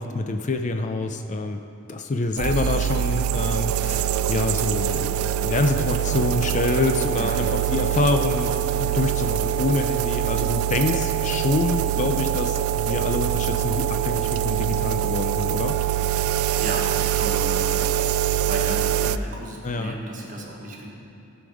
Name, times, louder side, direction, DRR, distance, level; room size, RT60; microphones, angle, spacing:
voice 1, 0.0-1.6 1.9-15.8 19.6-20.0, left 3 dB, 35° left, 6 dB, 0.4 m, -26 dB
sound 1, 2.4-19.2, right 11 dB, 85° right, 0.3 m, -24 dB
voice 2, 7.1-7.5 16.2-20.9, right 1 dB, 40° right, -1 dB, 1.5 m, -35 dB
15.5 x 5.2 x 4.9 m, 2.7 s
head